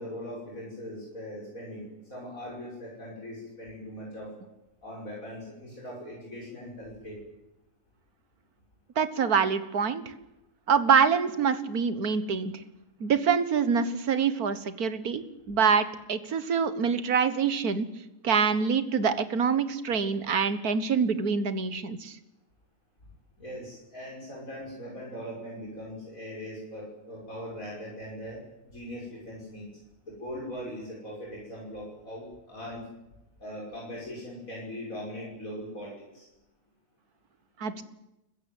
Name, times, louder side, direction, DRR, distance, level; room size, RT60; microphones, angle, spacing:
voice 1, 0.0-4.3 4.8-7.2 23.4-28.4 28.6-29.7 30.0-32.9 33.4-36.3, equal, 60° left, -4 dB, 6.2 m, -40 dB
voice 2, 9.0-10.0 10.7-12.6 13.0-17.9 18.2-22.1 37.6-37.8, right 6 dB, 70° right, 12 dB, 2.0 m, -25 dB
27.5 x 15.5 x 9.2 m, 0.92 s
omnidirectional pair, 1.6 m